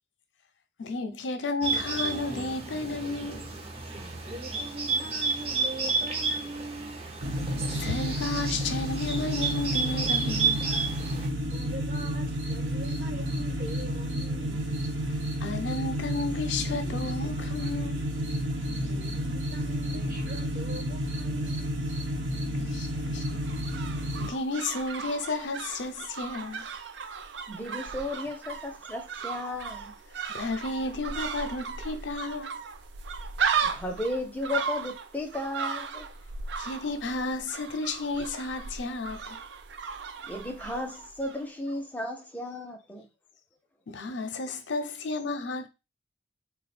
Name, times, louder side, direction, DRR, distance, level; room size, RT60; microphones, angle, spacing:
voice 1, 0.8-3.6 7.8-10.6 15.4-18.1 22.6-23.4 24.2-26.6 30.3-32.6 36.6-39.4 43.9-45.7, left 2 dB, 80° left, 0.6 m, -32 dB
Bird, 1.6-11.3, right 4 dB, 35° right, 0.7 m, -31 dB
voice 2, 3.9-7.0 11.5-14.8 18.9-21.8, right 1 dB, 50° right, 1.1 m, -42 dB
sound 1, 7.2-24.3, equal, 90° right, 1.0 m, -31 dB
sound 2, 23.2-41.4 41.7-41.8, right 6 dB, 70° right, 0.5 m, -36 dB
voice 3, 27.5-29.9 33.6-36.1 40.3-43.0, left 1 dB, 10° left, 0.6 m, -34 dB
3.5 x 2.2 x 4.2 m
head